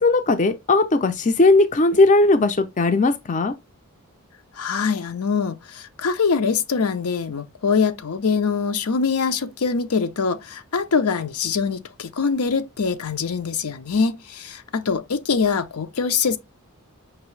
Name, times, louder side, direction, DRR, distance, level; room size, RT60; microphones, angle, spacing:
voice 1, 0.0-3.5, left 2 dB, 35° left, 0.5 m, -18 dB
voice 2, 4.6-16.4, left 5 dB, 75° left, 0.6 m, -23 dB
5.9 x 2.7 x 3.1 m
head